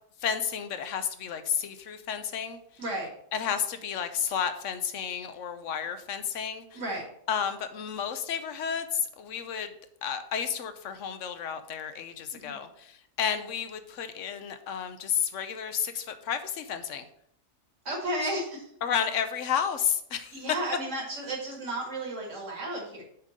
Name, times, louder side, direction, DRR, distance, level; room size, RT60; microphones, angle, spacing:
voice 1, 0.2-2.6 3.3-6.8 7.3-9.7 10.0-12.9 13.2-17.0 18.8-20.4, left 8 dB, 70° left, 10 dB, 1.1 m, -31 dB
voice 2, 2.8-3.1 6.7-7.0 12.3-12.6 17.9-18.7 20.3-23.0, right 1 dB, 65° right, 0 dB, 2.4 m, -33 dB
7.3 x 3.8 x 6.4 m, 0.70 s
omnidirectional pair, 1.4 m